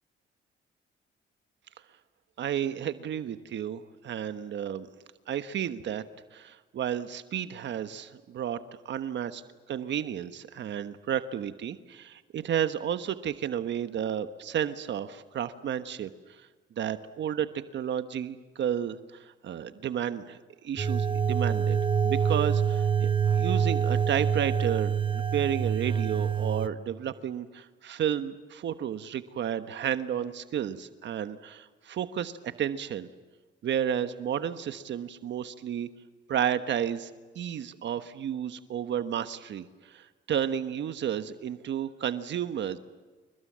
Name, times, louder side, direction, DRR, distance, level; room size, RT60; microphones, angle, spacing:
voice 1, 2.4-4.9 5.3-6.0 6.3-8.6 8.8-9.4 9.7-16.5 16.8-21.8 22.0-33.1 33.6-35.9 36.3-42.8, right 9 dB, 65° right, 10 dB, 1.3 m, -32 dB
sound 1, 20.8-26.7, right 7 dB, 25° right, 0.9 m, -26 dB
28.5 x 22.5 x 7.5 m, 1.4 s
cardioid pair, 90°, 20 cm